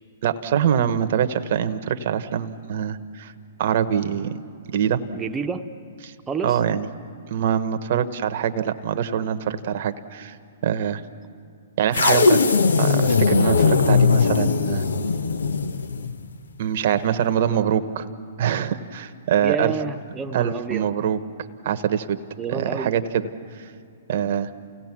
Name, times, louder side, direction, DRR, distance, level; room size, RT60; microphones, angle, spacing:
voice 1, 0.2-3.3 3.6-4.4 4.7-5.0 6.4-6.9 7.3-10.4 10.6-11.0 11.8-12.4 12.8-14.8 16.6-18.1 18.4-19.7 20.3-21.2 21.6-22.2 22.5-23.3 24.1-24.5, right 9 dB, 55° right, 11 dB, 1.1 m, -24 dB
voice 2, 5.1-5.7 6.3-6.6 19.4-20.9 22.4-23.0, right 5 dB, 15° right, 6 dB, 1.0 m, -29 dB
sound 1, 11.9-16.2, left 5 dB, 85° left, 0.9 m, -19 dB
29.0 x 17.5 x 6.1 m, 2.5 s
hypercardioid pair, 125°, 0 cm